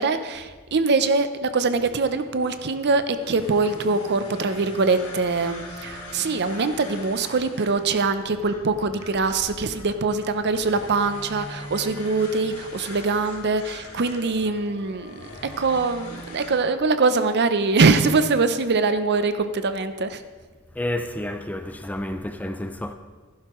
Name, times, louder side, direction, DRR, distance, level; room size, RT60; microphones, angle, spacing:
voice 1, 0.0-20.2, right 3 dB, 50° right, 0.6 m, -23 dB
sound 1, 1.6-16.5, left 1 dB, 70° left, 2.2 m, -41 dB
voice 2, 20.7-22.9, left 1 dB, 5° left, 0.4 m, -30 dB
15.0 x 11.5 x 3.1 m
head